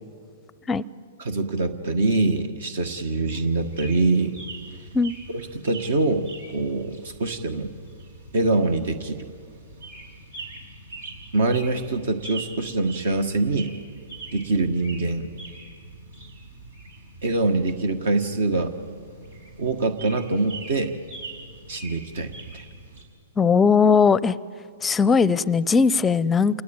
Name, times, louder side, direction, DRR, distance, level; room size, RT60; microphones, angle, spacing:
voice 1, 1.2-4.4 5.3-7.7 8.3-9.2 11.3-13.7 14.3-15.3 17.2-18.7 19.6-20.9 21.7-22.6, right 2 dB, 70° right, 8 dB, 1.5 m, -24 dB
sound 1, 3.3-23.0, right 3 dB, 85° right, 5.5 m, -43 dB
voice 2, 23.4-24.4 24.8-26.6, left 5 dB, 15° left, 20 dB, 0.5 m, -19 dB
27.5 x 20.0 x 8.9 m, 2.4 s
hypercardioid pair, 135°, 0 cm